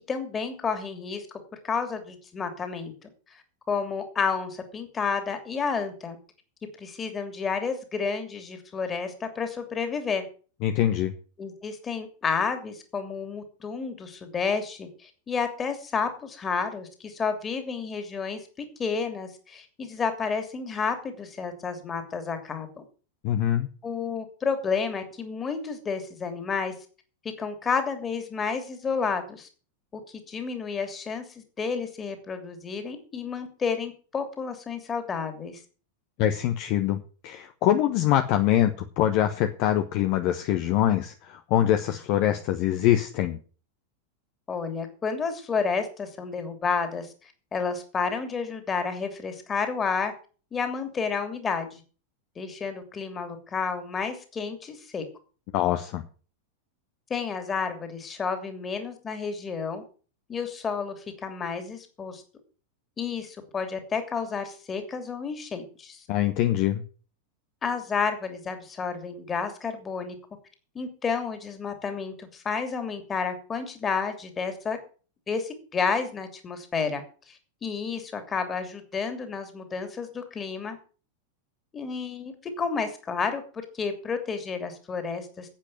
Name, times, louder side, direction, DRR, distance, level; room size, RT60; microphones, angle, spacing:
voice 1, 0.1-1.3 1.6-3.1 3.7-6.2 6.8-10.2 11.4-22.8 23.8-26.7 27.4-29.5 29.9-30.0 30.3-35.6 44.5-50.1 50.5-51.8 52.4-55.0 57.1-59.8 60.3-62.2 63.0-66.0 67.6-70.1 70.7-74.8 75.3-77.0 77.3-80.8 81.7-85.5, left 5 dB, 20° left, 7 dB, 2.9 m, -31 dB
voice 2, 10.6-11.1 23.2-23.7 36.2-43.4 55.5-56.0 66.1-66.8, left 12 dB, 45° left, 8 dB, 1.1 m, -24 dB
10.0 x 8.5 x 7.8 m, 0.39 s
figure-of-eight pair, 90°, 0 cm